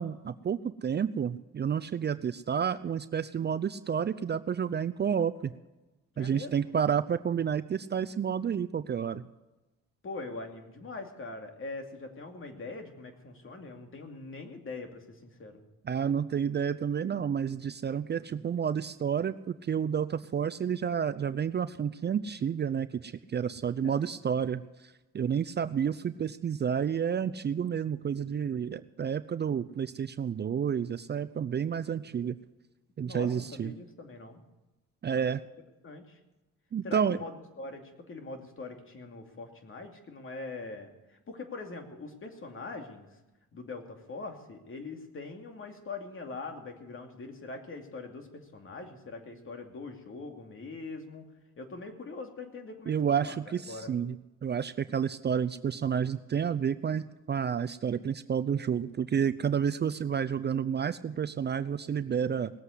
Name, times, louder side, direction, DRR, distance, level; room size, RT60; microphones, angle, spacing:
voice 1, 0.0-5.5 6.2-9.2 15.8-24.6 25.1-32.4 33.0-33.7 35.0-35.4 36.7-37.2 52.9-54.2 54.4-62.5, right 7 dB, 35° right, 12 dB, 0.5 m, -30 dB
voice 2, 6.1-6.7 10.0-15.6 23.8-24.0 33.0-34.4 35.8-36.2 36.8-43.1 43.5-51.3 51.6-53.4 53.7-53.9, left 3 dB, 45° left, 4 dB, 2.7 m, -42 dB
19.0 x 8.0 x 8.0 m, 1.1 s
cardioid pair, 90°, 30 cm